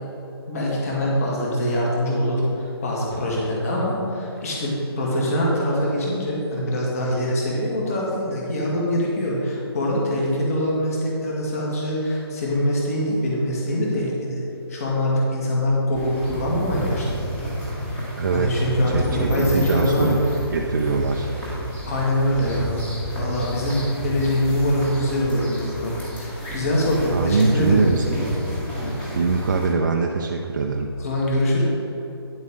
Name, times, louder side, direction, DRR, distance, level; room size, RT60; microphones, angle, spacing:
voice 1, 0.5-14.4 14.7-17.3 18.3-20.1 21.9-27.9 31.0-31.6, left 1 dB, 35° left, -4 dB, 2.0 m, -23 dB
sound 1, 15.9-29.7, equal, 10° left, 1.3 m, -31 dB
voice 2, 18.2-20.2 20.5-21.3 27.1-28.2 29.1-30.9, right 4 dB, 45° right, 1 dB, 0.5 m, -23 dB
9.7 x 7.4 x 3.7 m, 3.0 s
hypercardioid pair, 170°, 14 cm